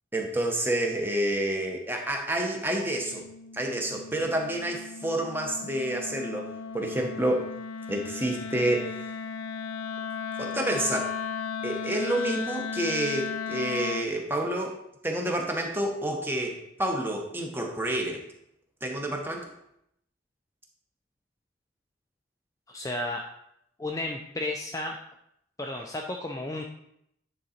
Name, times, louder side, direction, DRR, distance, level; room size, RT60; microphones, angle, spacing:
voice 1, 0.1-3.3 3.5-6.5 6.7-7.5 7.9-9.1 10.4-11.1 11.6-14.8 15.0-18.2 18.8-19.5, right 1 dB, 10° right, 2 dB, 0.9 m, -29 dB
Wind instrument woodwind instrument, 2.6-14.1, left 6 dB, 90° left, 0.4 m, -36 dB
voice 2, 22.7-23.2 23.8-25.0 25.6-26.7, left 2 dB, 15° left, 2 dB, 0.4 m, -33 dB
9.4 x 3.8 x 4.3 m, 0.77 s
head